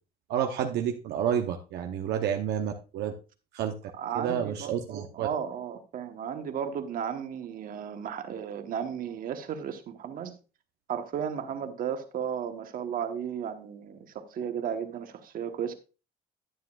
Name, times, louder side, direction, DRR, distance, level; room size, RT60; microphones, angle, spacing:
voice 1, 0.3-3.1 3.5-3.7 4.1-5.3, right 9 dB, 80° right, 3 dB, 0.8 m, -29 dB
voice 2, 3.9-10.4 10.9-15.7, right 8 dB, 55° right, 7 dB, 1.2 m, -34 dB
10.5 x 9.2 x 2.4 m, 0.32 s
cardioid pair, 110°, 17 cm